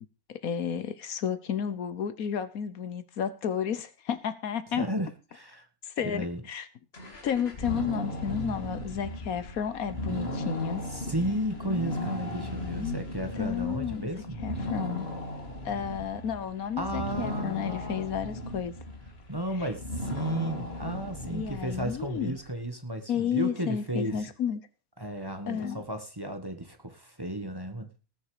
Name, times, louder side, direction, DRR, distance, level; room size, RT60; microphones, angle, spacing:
voice 1, 0.4-4.8 5.8-6.7 7.2-10.8 12.8-13.0 13.4-14.1 14.4-15.1 15.6-18.7 21.3-22.4 23.1-24.6 25.5-25.8, left 8 dB, 75° left, 13 dB, 1.5 m, -32 dB
voice 2, 4.7-5.7 6.0-6.5 10.9-14.4 16.8-18.1 19.3-24.3 25.0-27.9, right 1 dB, 15° right, 6 dB, 1.5 m, -34 dB
sound 1, 6.9-22.4, left 1 dB, 45° left, 2.5 m, -36 dB
19.0 x 7.1 x 4.9 m, 0.33 s
omnidirectional pair, 1.5 m